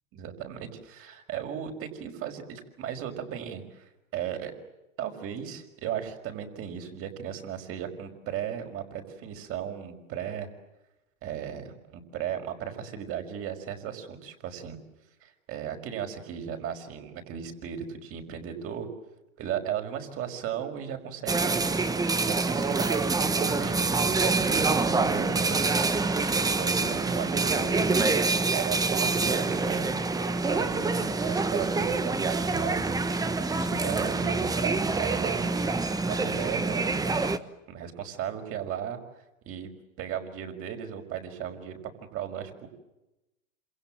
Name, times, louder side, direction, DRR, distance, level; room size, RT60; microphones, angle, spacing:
voice 1, 0.1-3.8 4.1-4.5 5.0-10.5 11.2-14.8 15.2-18.9 19.4-21.7 22.2-25.8 26.6-28.2 28.5-30.0 30.4-32.8 33.5-35.6 36.0-37.3 37.7-39.0 39.5-39.7 40.0-41.8 42.1-42.7, right 9 dB, 35° right, 6 dB, 5.8 m, -36 dB
sound 1, 21.3-37.4, right 3 dB, 10° right, 1.2 m, -26 dB
28.0 x 27.5 x 7.7 m, 0.95 s
hypercardioid pair, 135°, 41 cm